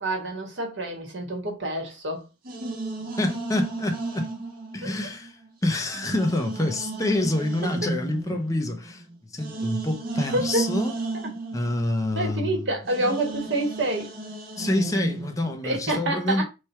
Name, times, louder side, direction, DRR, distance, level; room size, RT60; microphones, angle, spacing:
voice 1, 0.0-2.2 4.8-4.9 10.3-10.9 12.1-14.1 15.6-16.4, right 1 dB, 70° right, 1.2 m, -27 dB
sound 1, 2.4-5.5 5.9-12.5 12.8-15.6, right 2 dB, 45° right, 0.7 m, -33 dB
voice 2, 3.2-4.3 4.7-9.0 9.3-10.9 11.5-12.8 14.6-16.4, left 1 dB, 15° left, 0.5 m, -27 dB
3.2 x 2.3 x 4.2 m
head